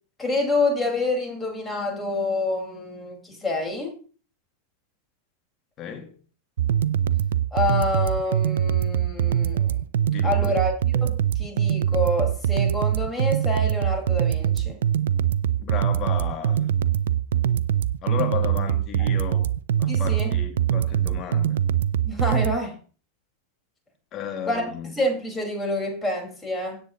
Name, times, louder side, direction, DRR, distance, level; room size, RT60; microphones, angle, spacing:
voice 1, 0.2-3.9 7.5-9.7 10.2-10.7 11.0-14.8 17.4-17.5 19.9-20.4 22.0-22.8 24.5-26.8, left 2 dB, 10° left, 4.7 m, -27 dB
voice 2, 5.8-6.2 10.1-10.6 15.6-16.7 18.0-19.5 19.8-21.6 24.1-24.9, left 8 dB, 30° left, 2.2 m, -34 dB
sound 1, 6.6-22.6, right 10 dB, 60° right, 0.4 m, -23 dB
17.0 x 8.4 x 3.0 m
figure-of-eight pair, 90°, 0 cm